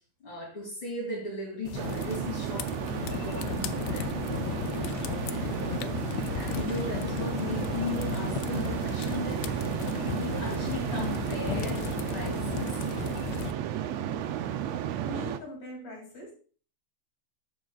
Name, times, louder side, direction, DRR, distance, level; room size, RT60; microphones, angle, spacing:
voice 1, 0.2-9.4 10.0-12.8, left 2 dB, 45° left, -3 dB, 3.1 m, -38 dB
sound 1, 1.7-13.5, left 11 dB, 80° left, 1.6 m, -35 dB
sound 2, 1.7-15.4, right 10 dB, 75° right, 1.6 m, -33 dB
voice 2, 15.0-16.3, left 1 dB, 60° left, 0 dB, 3.7 m, -41 dB
14.5 x 6.3 x 2.3 m, 0.40 s
omnidirectional pair, 3.4 m